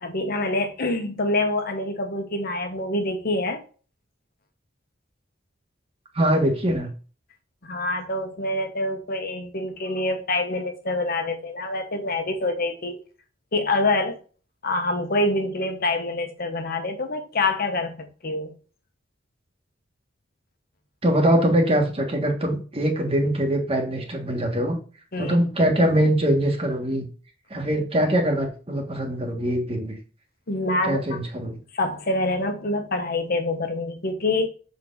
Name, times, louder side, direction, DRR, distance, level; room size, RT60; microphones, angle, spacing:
voice 1, 0.0-3.6 7.6-13.0 13.5-14.2 14.6-17.9 18.2-18.5 25.1-25.4 30.5-31.2 31.7-34.5, left 2 dB, 50° left, 1.2 m, -26 dB
voice 2, 6.1-6.9 21.0-24.8 25.2-27.1 27.5-30.0 30.8-31.6, right 1 dB, 30° right, 1.5 m, -22 dB
6.8 x 4.2 x 3.9 m
head